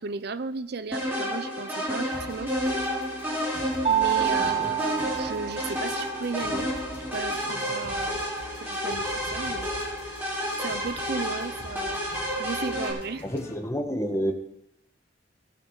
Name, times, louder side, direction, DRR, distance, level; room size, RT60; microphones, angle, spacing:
voice 1, 0.0-2.5 3.9-6.7 7.1-8.2 8.6-9.9 10.6-12.0 12.4-13.2, right 4 dB, 60° right, 13 dB, 0.6 m, -35 dB
sound 1, 0.9-12.9, equal, 10° right, 3.6 m, -30 dB
sound 2, 2.1-13.5, left 1 dB, 35° left, 3.9 m, -45 dB
Mallet percussion, 3.8-6.4, right 10 dB, 35° right, 0.8 m, -28 dB
voice 2, 4.4-4.7 13.2-14.3, equal, 15° left, 4 dB, 1.3 m, -29 dB
16.5 x 6.3 x 5.6 m, 0.79 s
head